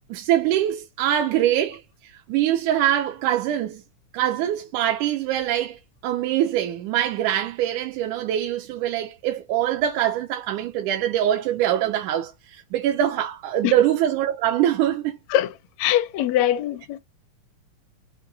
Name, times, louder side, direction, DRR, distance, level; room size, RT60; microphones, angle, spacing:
voice 1, 0.1-3.8 4.1-15.2, right 11 dB, 80° right, 2.0 m, -23 dB
voice 2, 15.3-17.0, left 13 dB, 75° left, 1.7 m, -23 dB
5.8 x 2.2 x 3.9 m
omnidirectional pair, 3.6 m